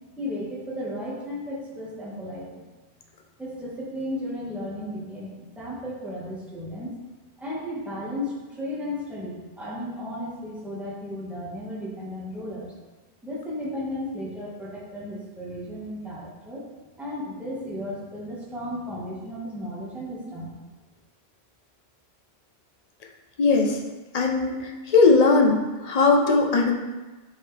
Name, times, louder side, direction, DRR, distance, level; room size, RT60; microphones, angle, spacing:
voice 1, 0.2-2.7 3.4-6.9 7.4-12.7 13.2-16.6 17.0-20.5, left 1 dB, ahead, -7 dB, 1.5 m, -34 dB
voice 2, 23.4-23.8 24.1-26.7, left 3 dB, 40° left, 1 dB, 0.8 m, -19 dB
7.5 x 4.8 x 3.3 m, 1.2 s
omnidirectional pair, 1.1 m